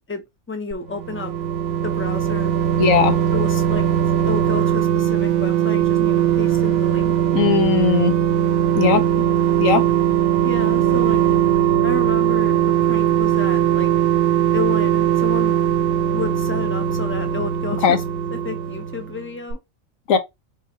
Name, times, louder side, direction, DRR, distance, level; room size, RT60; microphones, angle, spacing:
voice 1, 0.1-1.3 1.8-2.5 3.3-3.9 4.2-7.1 9.1-9.2 10.4-11.2 11.8-13.9 14.5-15.6 16.1-18.0 18.3-19.6, left 4 dB, 15° left, 0.5 m, -31 dB
sound 1, 0.7-19.2 19.5-19.6, right 10 dB, 80° right, 1.1 m, -19 dB
voice 2, 2.8-3.2 7.3-8.1 8.7-9.0 9.6-9.8 17.8-18.0 20.1-20.2, left 7 dB, 75° left, 1.2 m, -17 dB
3.9 x 2.4 x 4.3 m
omnidirectional pair, 1.4 m